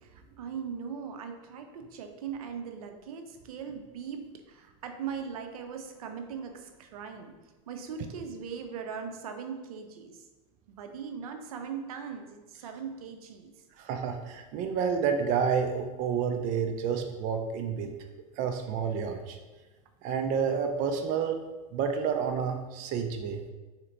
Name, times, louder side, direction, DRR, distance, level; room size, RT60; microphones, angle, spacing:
voice 1, 0.0-7.3 7.7-10.2 10.7-13.5 18.4-18.5, right 6 dB, 85° right, 5 dB, 0.6 m, -40 dB
voice 2, 13.8-17.9 18.4-19.4 20.0-21.4 21.7-23.4, right 6 dB, 45° right, 5 dB, 0.5 m, -29 dB
4.3 x 2.9 x 3.8 m, 1.2 s
supercardioid pair, 125°, 18 cm